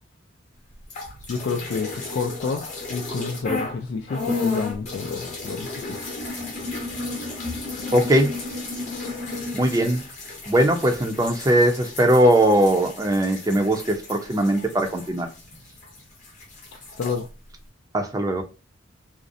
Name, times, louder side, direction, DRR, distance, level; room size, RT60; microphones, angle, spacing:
Pee and fart, 0.8-3.8 4.1-16.0 16.2-17.2, left 3 dB, 40° left, 0.8 m, -33 dB
voice 1, 1.3-6.0 17.0-17.3, left 4 dB, 65° left, 0.3 m, -29 dB
voice 2, 7.9-8.4 9.5-10.0 10.5-15.3 17.9-18.4, right 1 dB, 20° right, 0.4 m, -20 dB
2.5 x 2.0 x 2.5 m
head